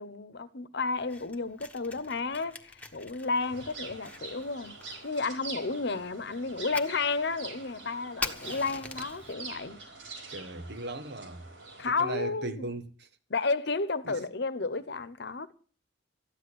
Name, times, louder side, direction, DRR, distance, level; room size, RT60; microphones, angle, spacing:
voice 1, 0.0-4.8 5.0-9.8 11.8-12.5 13.3-15.5, left 3 dB, 65° left, 1.0 m, -32 dB
Fire, 0.9-9.3, left 3 dB, 10° left, 1.4 m, -44 dB
sound 1, 3.4-11.9, right 3 dB, 85° right, 4.9 m, -45 dB
voice 2, 10.3-11.5 11.9-13.1 14.0-14.2, right 2 dB, 65° right, 1.5 m, -38 dB
14.0 x 10.5 x 8.1 m
head